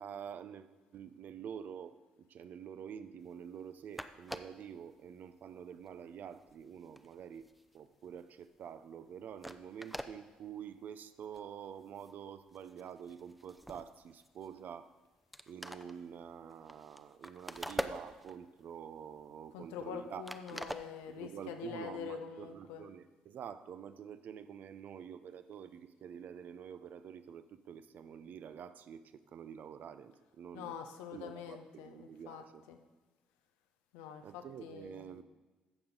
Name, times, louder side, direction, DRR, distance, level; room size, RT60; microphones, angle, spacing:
voice 1, 0.0-7.5 7.7-14.9 15.5-20.2 20.5-20.6 21.1-30.7 31.1-32.6 34.2-35.2, right 8 dB, 55° right, 12 dB, 0.6 m, -47 dB
sound 1, 3.6-3.7 3.9-4.7 5.3-5.5 5.8-8.2 8.6-8.8 9.1-9.2 9.4-10.1 10.8-10.9 11.2-11.4 11.8-12.2 12.5-14.7 15.1-15.2 15.3-18.5 18.9-20.0 20.2-21.4, equal, ahead, 0.7 m, -44 dB
voice 2, 19.5-22.9 30.5-32.8 33.9-35.2, left 7 dB, 75° left, 7 dB, 0.9 m, -45 dB
15.0 x 7.0 x 3.9 m, 1.2 s
hypercardioid pair, 45°, 3 cm